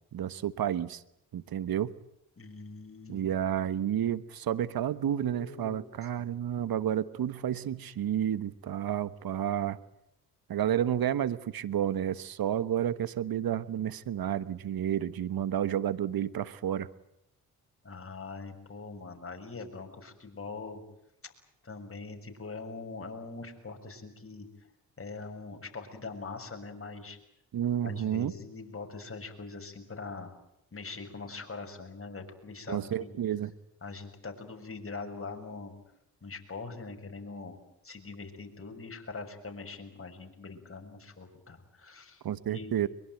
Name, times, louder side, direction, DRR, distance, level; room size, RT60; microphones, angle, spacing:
voice 1, 0.1-1.0 1.3-1.9 3.1-9.8 10.5-16.9 27.5-28.3 32.7-33.5 42.2-42.9, right 10 dB, 60° right, 16 dB, 1.4 m, -30 dB
voice 2, 2.4-3.3 5.0-5.8 6.1-6.3 17.8-20.8 21.2-21.3 21.6-24.5 25.0-27.2 27.8-30.3 30.7-33.1 33.8-35.7 36.2-37.6 37.8-42.7, left 3 dB, 35° left, 4 dB, 6.5 m, -42 dB
23.0 x 23.0 x 9.3 m, 0.78 s
supercardioid pair, 55°, 39 cm